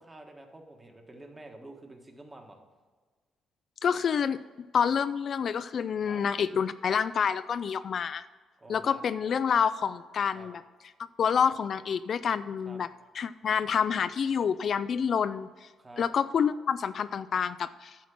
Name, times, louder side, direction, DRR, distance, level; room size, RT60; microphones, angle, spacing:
voice 1, 0.0-2.6 6.0-6.2 8.6-9.0 10.3-10.5 12.6-12.8 15.8-16.0, right 2 dB, 20° right, 3 dB, 1.5 m, -48 dB
voice 2, 3.8-4.4 4.7-8.3 8.7-10.6 11.2-12.9 13.1-15.5 16.0-18.0, left 7 dB, 55° left, 13 dB, 0.3 m, -28 dB
10.5 x 4.5 x 7.1 m, 1.4 s
cardioid pair, 90°, 0 cm